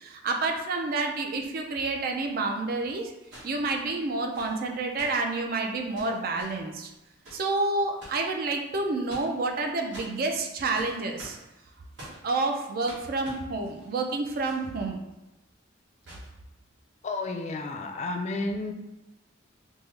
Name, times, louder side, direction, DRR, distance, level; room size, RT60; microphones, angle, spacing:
voice 1, 0.0-3.1 3.4-6.9 7.3-11.4 12.2-15.0, right 3 dB, 50° right, 3 dB, 0.4 m, -29 dB
sound 1, 1.4-1.5 3.2-8.3 8.8-9.6 9.9-14.9 15.1-15.2 16.0-16.3 17.3-17.5, equal, 70° right, 1.3 m, -47 dB
voice 2, 17.0-18.7, left 2 dB, 35° left, 4 dB, 0.3 m, -31 dB
3.5 x 2.0 x 3.1 m, 0.95 s
head